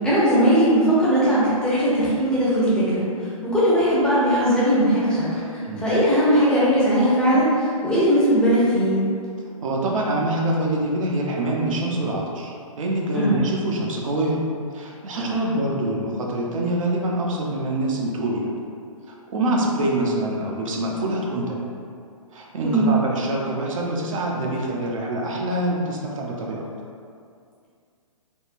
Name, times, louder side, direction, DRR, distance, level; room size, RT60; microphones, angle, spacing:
voice 1, 0.0-3.1 3.4-9.0 13.1-13.4 15.2-15.3 22.6-22.9, equal, 5° left, -10 dB, 0.7 m, -19 dB
voice 2, 9.6-14.4 14.7-18.5 19.1-21.7 22.3-26.7, right 1 dB, 65° right, -2 dB, 0.6 m, -25 dB
3.6 x 2.2 x 2.5 m, 2.3 s
hypercardioid pair, 135°, 18 cm